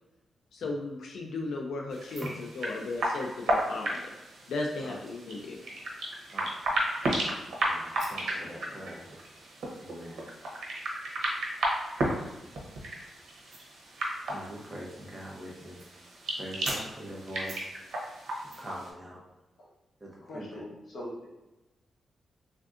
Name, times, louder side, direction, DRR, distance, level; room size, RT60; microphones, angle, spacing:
voice 1, 0.5-4.1 4.5-5.6, left 3 dB, 80° left, 0 dB, 0.4 m, -35 dB
sound 1, 1.9-18.9, right 1 dB, 90° right, 0.7 m, -34 dB
voice 2, 6.3-6.9 7.6-10.3 12.0-12.4 13.5-13.6 14.3-15.8 16.3-17.7 18.6-19.2 20.0-20.6, equal, 15° right, -4 dB, 0.7 m, -43 dB
voice 3, 20.2-21.3, left 1 dB, 60° left, -4 dB, 0.9 m, -41 dB
3.4 x 2.5 x 2.4 m, 1.0 s
wide cardioid pair, 150°, 0 cm